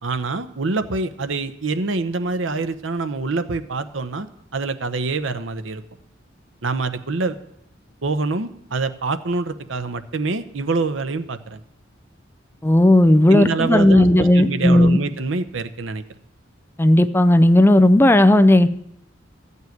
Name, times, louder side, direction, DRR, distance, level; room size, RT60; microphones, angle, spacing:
voice 1, 0.0-4.3 4.5-5.8 6.6-7.4 8.0-11.6 13.3-16.0, right 3 dB, 85° right, 9 dB, 0.9 m, -25 dB
voice 2, 12.6-15.0 16.8-18.7, left 1 dB, 10° left, 10 dB, 0.4 m, -14 dB
14.5 x 5.5 x 9.3 m, 0.75 s
head